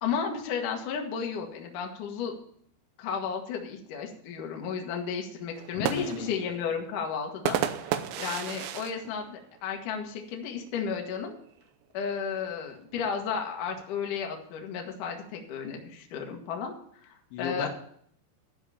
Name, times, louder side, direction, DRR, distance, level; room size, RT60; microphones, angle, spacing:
voice 1, 0.0-2.3 3.0-11.3 11.9-16.7 17.0-17.7, left 6 dB, 60° left, 2 dB, 2.3 m, -33 dB
sound 1, 5.6-10.2 10.6-10.7 11.0-11.5 12.3-13.8, right 10 dB, 80° right, 2.8 m, -34 dB
voice 2, 5.8-6.4 17.3-17.7, left 8 dB, 80° left, 4 dB, 3.2 m, -34 dB
13.0 x 4.9 x 8.6 m, 0.65 s
omnidirectional pair, 5.5 m